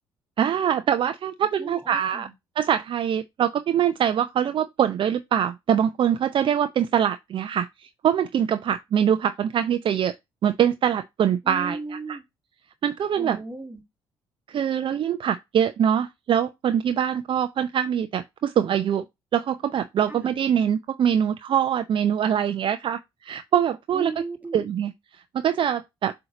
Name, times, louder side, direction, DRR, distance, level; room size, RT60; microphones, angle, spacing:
voice 1, 0.4-2.3 2.6-10.1 10.4-11.8 12.1-12.2 12.8-13.4 14.5-19.0 19.3-24.1 24.5-26.1, right 9 dB, 45° right, 0.5 m, -23 dB
voice 2, 1.6-2.3 11.4-12.2 13.2-13.8 20.1-20.4 23.9-24.7, right 3 dB, 15° right, 1.7 m, -36 dB
7.7 x 2.9 x 4.9 m
figure-of-eight pair, 50°, 12 cm